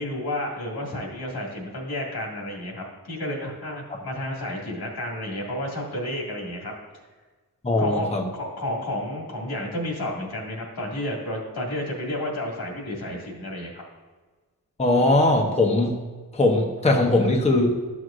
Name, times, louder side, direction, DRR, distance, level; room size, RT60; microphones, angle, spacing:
voice 1, 0.0-6.7 7.8-13.8, left 1 dB, 80° left, -2 dB, 2.1 m, -31 dB
voice 2, 7.6-8.2 14.8-16.0 16.3-17.9, left 2 dB, 20° left, 1 dB, 0.8 m, -20 dB
12.0 x 6.2 x 2.5 m, 1.3 s
wide cardioid pair, 80°, 37 cm